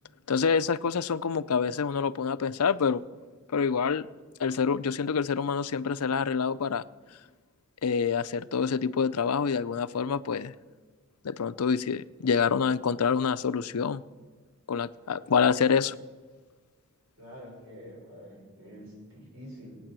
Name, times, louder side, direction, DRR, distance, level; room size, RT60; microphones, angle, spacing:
voice 1, 0.3-3.0 3.5-4.1 4.4-6.8 7.8-10.5 11.2-14.0 14.7-15.9, left 6 dB, 85° left, 14 dB, 0.5 m, -26 dB
voice 2, 17.2-19.8, equal, 70° right, -2 dB, 6.4 m, -46 dB
18.5 x 9.3 x 7.5 m, 1.4 s
head